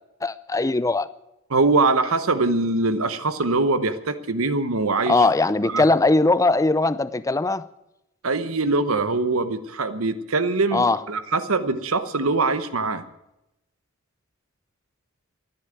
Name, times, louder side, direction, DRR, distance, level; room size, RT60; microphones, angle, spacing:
voice 1, 0.2-1.1 5.1-7.7 10.7-11.0, left 2 dB, 15° left, 15 dB, 0.5 m, -20 dB
voice 2, 1.5-5.2 5.6-5.8 8.2-13.0, right 3 dB, 75° right, 12 dB, 1.0 m, -23 dB
13.5 x 11.0 x 9.0 m, 0.88 s
head